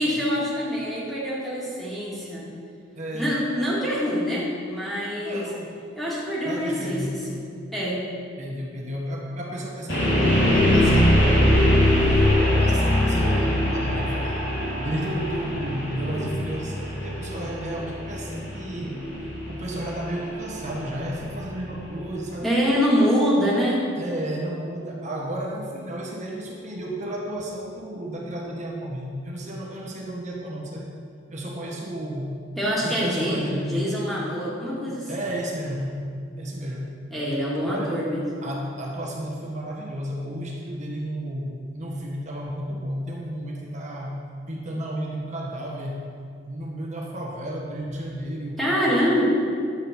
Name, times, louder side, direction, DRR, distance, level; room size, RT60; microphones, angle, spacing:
voice 1, 0.0-2.5 3.1-5.5 6.0-7.4 7.7-8.0 22.4-23.9 32.6-35.1 37.1-38.2 48.6-49.2, equal, ahead, -7 dB, 2.3 m, -25 dB
voice 2, 3.0-3.3 5.2-5.7 6.4-7.1 8.4-11.7 12.5-14.4 14.8-19.0 19.5-22.6 24.0-30.9 31.3-32.4 32.8-33.8 35.1-36.0 36.4-36.9 37.7-38.0 38.4-44.2 44.5-46.0 46.4-48.6, right 1 dB, 40° right, -2 dB, 1.7 m, -32 dB
sound 1, 9.9-21.8, left 1 dB, 65° left, 2.7 m, -22 dB
11.0 x 7.7 x 4.5 m, 2.3 s
head